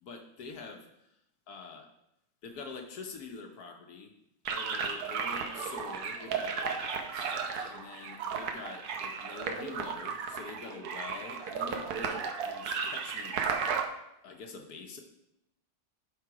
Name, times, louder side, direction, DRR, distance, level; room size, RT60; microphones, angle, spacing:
voice 1, 0.0-0.8 1.5-1.9 2.4-4.1 4.5-7.3 7.6-13.4 14.2-15.0, left 4 dB, 60° left, 4 dB, 1.3 m, -45 dB
sound 1, 4.4-13.8, right 6 dB, 65° right, 1.1 m, -34 dB
11.0 x 3.8 x 4.8 m, 0.82 s
omnidirectional pair, 2.0 m